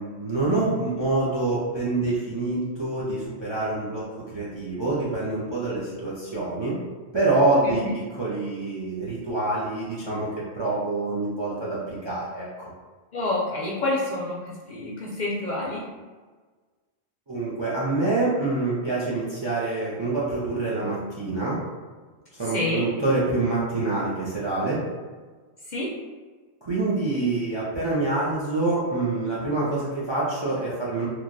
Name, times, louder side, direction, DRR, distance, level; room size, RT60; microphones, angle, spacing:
voice 1, 0.0-6.8 7.1-10.3 10.6-12.7 17.3-21.6 22.4-24.8 26.6-31.1, right 2 dB, 40° right, -7 dB, 0.4 m, -26 dB
voice 2, 13.1-15.9 22.5-22.9 25.7-25.9, left 2 dB, 55° left, -5 dB, 0.5 m, -28 dB
3.0 x 2.2 x 2.5 m, 1.4 s
omnidirectional pair, 1.1 m